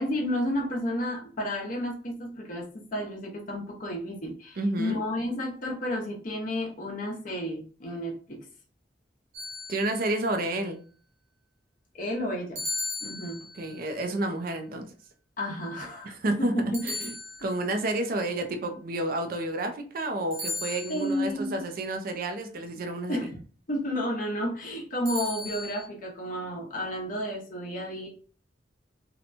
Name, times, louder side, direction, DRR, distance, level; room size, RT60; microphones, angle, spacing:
voice 1, 0.0-8.4 11.9-12.6 13.0-13.4 15.4-17.1 20.9-21.6 23.1-23.4 23.7-28.1, equal, 50° left, -1 dB, 0.8 m, -32 dB
voice 2, 4.6-5.0 9.7-10.8 13.6-14.9 16.0-17.0 17.4-23.3, right 2 dB, 55° right, 6 dB, 0.4 m, -30 dB
sound 1, 9.3-10.3 12.6-13.8 16.7-17.8 20.3-21.3 25.1-25.8, left 2 dB, 75° right, 0.9 m, -36 dB
2.8 x 2.1 x 2.6 m, 0.41 s
head